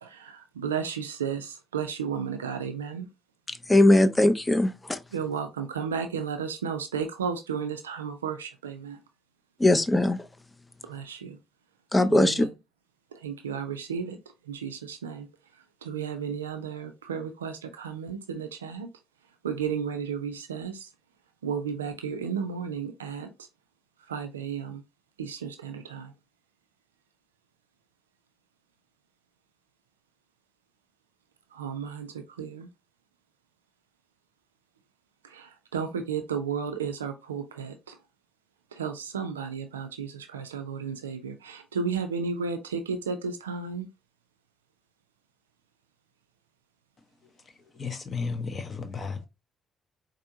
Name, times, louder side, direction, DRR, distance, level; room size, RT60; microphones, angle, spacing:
voice 1, 0.0-3.1 5.1-9.0 10.8-11.4 12.1-12.5 13.1-14.2 14.5-15.3 15.8-18.9 19.4-20.9 21.4-23.5 24.1-24.8 25.2-26.1 31.5-32.7 35.2-38.0 38.7-43.9, right 6 dB, 80° right, 0.3 m, -33 dB
voice 2, 3.5-5.0 9.6-10.2 11.9-12.5, left 1 dB, 15° left, 0.5 m, -20 dB
voice 3, 47.8-49.3, left 4 dB, 40° left, 0.8 m, -33 dB
4.4 x 2.6 x 2.6 m
figure-of-eight pair, 45°, 0 cm